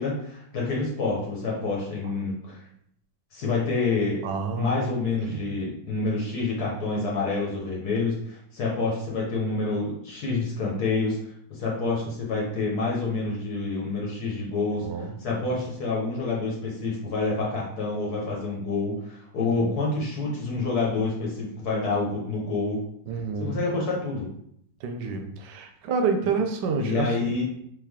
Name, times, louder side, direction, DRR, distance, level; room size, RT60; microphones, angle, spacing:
voice 1, 0.0-2.6 3.3-4.2 4.6-11.2 11.5-22.8 23.4-24.3 26.2-26.3 26.8-27.4, left 3 dB, 60° left, -3 dB, 1.4 m, -28 dB
voice 2, 4.2-4.7 5.2-5.6 14.7-15.5 19.4-19.8 23.1-23.6 24.8-27.4, right 5 dB, 75° right, 5 dB, 1.2 m, -29 dB
3.6 x 3.2 x 3.5 m, 0.70 s
omnidirectional pair, 2.0 m